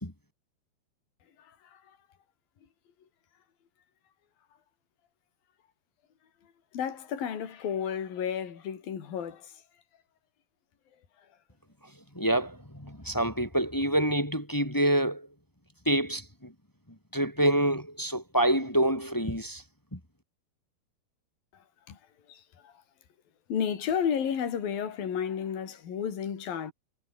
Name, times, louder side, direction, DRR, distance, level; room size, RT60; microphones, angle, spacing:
voice 1, 1.4-2.0 6.4-9.6 11.2-11.3 21.5-22.0 22.3-22.8 23.5-26.7, left 8 dB, 60° left, 5.1 m, -33 dB
voice 2, 12.1-15.3 15.8-16.5 17.1-19.6 19.9-20.0, right 1 dB, 5° left, 1.9 m, -27 dB
omnidirectional pair, 4.7 m